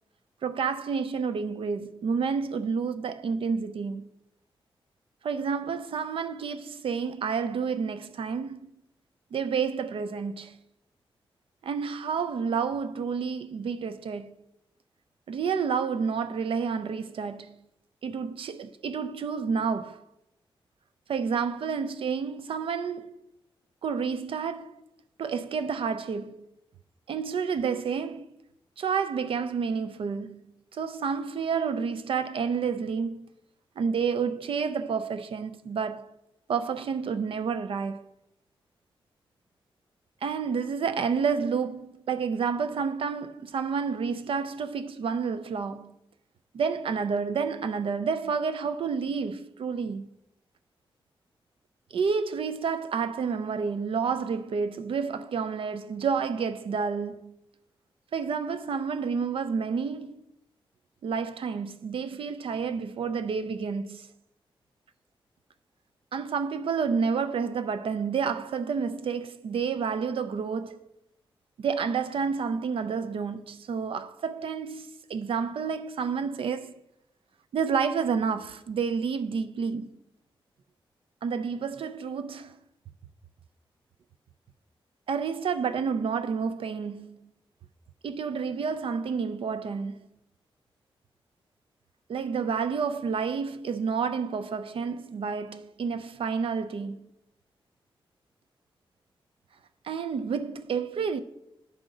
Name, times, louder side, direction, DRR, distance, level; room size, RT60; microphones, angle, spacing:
voice 1, 0.4-4.1 5.2-8.7 9.3-10.6 11.6-14.3 15.3-17.6 18.0-20.0 21.1-23.3 23.8-24.7 25.2-26.5 27.1-28.4 28.8-30.4 30.7-33.3 33.8-36.1 36.5-38.1 40.2-45.9 46.5-50.1 51.9-57.3 58.1-60.2 61.0-64.1 66.1-70.8 71.6-76.8 77.5-79.9 81.2-82.6 85.1-87.3 88.0-90.0 92.1-97.1 99.8-101.2, right 6 dB, 70° right, 0.4 m, -30 dB
9.8 x 5.0 x 3.8 m
wide cardioid pair, 150°, 9 cm